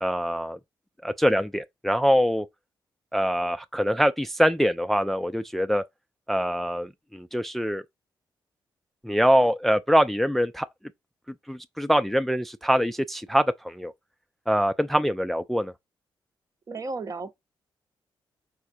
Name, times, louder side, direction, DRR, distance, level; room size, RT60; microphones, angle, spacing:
voice 1, 0.0-0.6 1.0-2.5 3.1-5.8 6.3-7.8 9.0-10.7 11.5-13.9 14.5-15.7, equal, ahead, 0.4 m, -24 dB
voice 2, 16.7-17.3, right 3 dB, 40° right, 0.8 m, -33 dB
4.7 x 4.3 x 2.6 m
cardioid pair, 70°, 9 cm